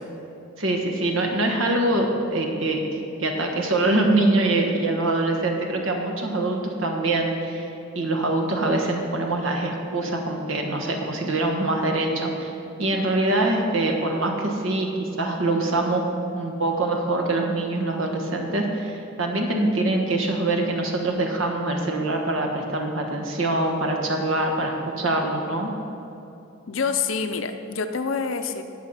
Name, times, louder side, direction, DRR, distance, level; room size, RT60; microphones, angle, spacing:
voice 1, 0.6-12.5 12.8-16.0 16.3-25.7, right 2 dB, 70° right, 2 dB, 1.4 m, -24 dB
voice 2, 26.7-28.6, left 5 dB, 70° left, 8 dB, 0.6 m, -26 dB
17.5 x 6.3 x 4.3 m, 2.8 s
head